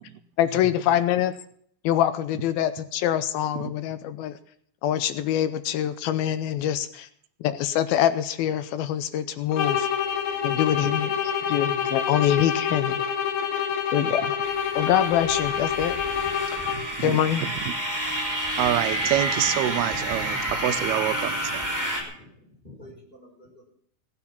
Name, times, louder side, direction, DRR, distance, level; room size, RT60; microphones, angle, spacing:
voice 1, 0.4-1.3 1.9-4.3 4.8-7.1 7.6-9.9 10.4-11.1 11.5-13.1 13.9-14.3 14.8-15.9 17.0-17.4, left 11 dB, 80° left, 12 dB, 2.6 m, -24 dB
sound 1, 9.5-17.0, left 8 dB, 60° left, 2.0 m, -27 dB
sound 2, 14.4-22.0, right 1 dB, 5° right, 2.7 m, -29 dB
voice 2, 16.7-17.7 18.6-21.7, right 13 dB, 90° right, 10 dB, 2.8 m, -27 dB
voice 3, 21.5-23.7, left 1 dB, 15° left, -1 dB, 5.1 m, -50 dB
18.0 x 9.8 x 5.8 m, 0.63 s
omnidirectional pair, 4.4 m